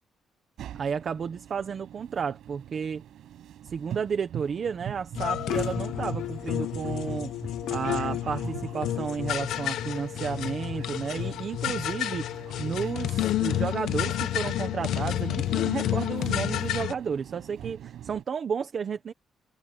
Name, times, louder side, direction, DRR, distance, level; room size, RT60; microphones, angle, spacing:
sound 1, 0.6-18.2, right 11 dB, 75° right, 6.3 m, -43 dB
voice 1, 0.7-3.0 3.6-7.3 7.7-19.1, right 6 dB, 40° right, 1.3 m, -32 dB
sound 2, 5.1-16.9, left 12 dB, 80° left, 1.1 m, -30 dB
cardioid pair, 155°, 0 cm